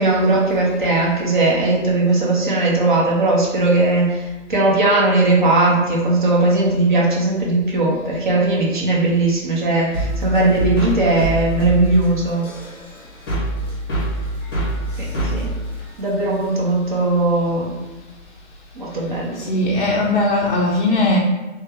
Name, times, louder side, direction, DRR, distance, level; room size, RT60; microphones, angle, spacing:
voice 1, 0.0-12.4 15.0-15.4 16.0-17.7 18.8-19.5, right 2 dB, 40° right, -3 dB, 0.9 m, -18 dB
sound 1, 9.9-16.6, right 2 dB, 20° left, 0.8 m, -25 dB
voice 2, 19.4-21.2, left 2 dB, 40° left, -3 dB, 0.5 m, -18 dB
3.4 x 2.8 x 3.4 m, 1.2 s
hypercardioid pair, 155°, 39 cm